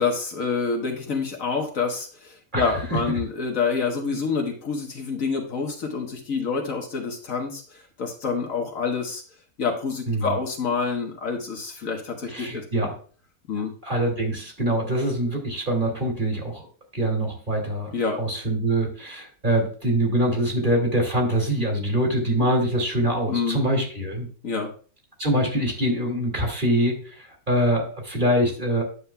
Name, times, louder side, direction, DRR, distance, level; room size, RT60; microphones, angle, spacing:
voice 1, 0.0-7.6 8.0-9.2 9.6-12.6 13.5-13.7 17.9-18.2 23.3-23.6 24.4-24.7, left 5 dB, 65° left, 2 dB, 1.6 m, -27 dB
voice 2, 2.5-3.0 10.1-10.3 12.3-13.0 13.8-16.6 16.9-17.9 18.2-24.3 25.2-28.8, right 1 dB, 30° right, 0 dB, 2.5 m, -24 dB
9.9 x 7.2 x 2.3 m, 0.40 s
omnidirectional pair, 1.6 m